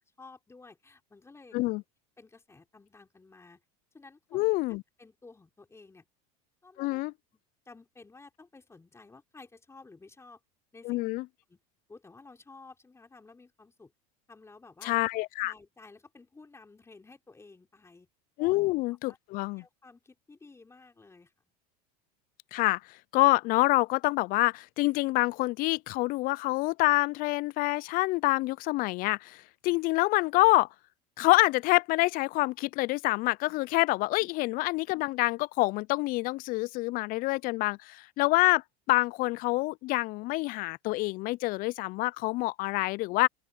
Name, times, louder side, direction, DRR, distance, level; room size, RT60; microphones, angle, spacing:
voice 1, 0.2-1.6 2.2-3.6 3.9-4.5 5.0-6.0 6.6-7.0 7.7-10.4 10.7-11.0 11.5-11.6 11.9-13.9 14.3-14.9 15.4-18.1 18.4-18.6 19.0-19.2 19.6-21.3 34.2-34.5, left 3 dB, 15° left, 4.2 m, -53 dB
voice 2, 4.3-4.8 6.8-7.1 10.8-11.2 14.8-15.5 18.4-19.6 22.5-22.8 23.1-30.7 31.2-43.3, left 21 dB, 50° left, 0.4 m, -27 dB
open air
supercardioid pair, 105°, 19 cm